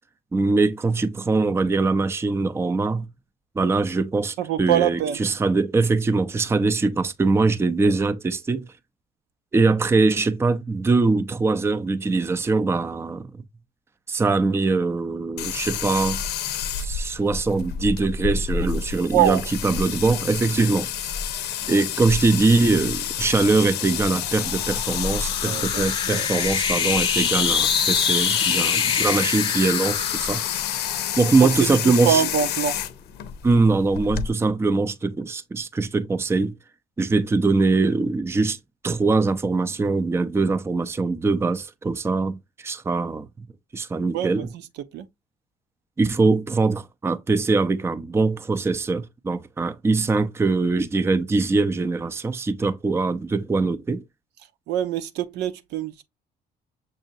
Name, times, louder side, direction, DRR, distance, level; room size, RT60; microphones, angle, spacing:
voice 1, 0.3-3.1 3.6-8.7 9.5-13.3 14.1-16.2 16.8-20.9 21.7-30.4 31.2-32.3 33.4-36.6 37.0-38.6 38.8-43.3 43.7-44.5 46.0-54.0, right 3 dB, 15° right, 0.5 m, -22 dB
voice 2, 4.4-5.2 19.1-19.4 21.6-21.8 25.4-26.3 31.4-32.8 44.1-44.5 44.9-45.1 54.7-56.0, right 10 dB, 80° right, 0.8 m, -24 dB
sound 1, 15.4-34.3, left 9 dB, 80° left, 0.7 m, -28 dB
sound 2, 23.5-32.2, left 5 dB, 30° left, 0.6 m, -27 dB
6.6 x 2.7 x 2.7 m
cardioid pair, 110°, 17 cm